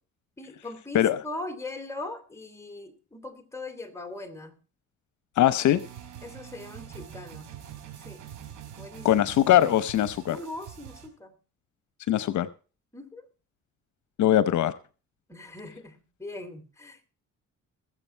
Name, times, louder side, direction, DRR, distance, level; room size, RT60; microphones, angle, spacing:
voice 1, 0.4-4.6 6.2-7.5 8.0-8.2 8.8-9.2 10.3-11.4 12.9-13.3 15.3-17.1, left 2 dB, 10° left, 6 dB, 3.1 m, -40 dB
voice 2, 5.4-5.8 9.0-10.4 12.1-12.5 14.2-14.7, left 12 dB, 70° left, 15 dB, 0.8 m, -21 dB
sound 1, 5.6-11.1, right 10 dB, 80° right, 3.9 m, -44 dB
20.5 x 7.6 x 4.5 m, 0.36 s
cardioid pair, 90°, 30 cm